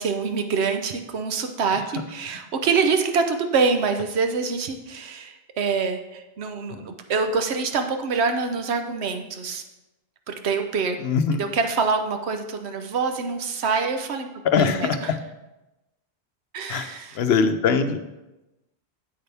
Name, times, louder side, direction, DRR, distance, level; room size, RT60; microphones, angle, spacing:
voice 1, 0.0-9.6 10.3-11.0 11.4-14.3 14.6-15.1 16.5-17.2, right 5 dB, 85° right, 6 dB, 1.1 m, -25 dB
voice 2, 11.0-11.4 14.4-15.2 16.7-18.0, left 6 dB, 75° left, 9 dB, 0.9 m, -22 dB
8.8 x 7.9 x 3.4 m, 0.99 s
omnidirectional pair, 1.1 m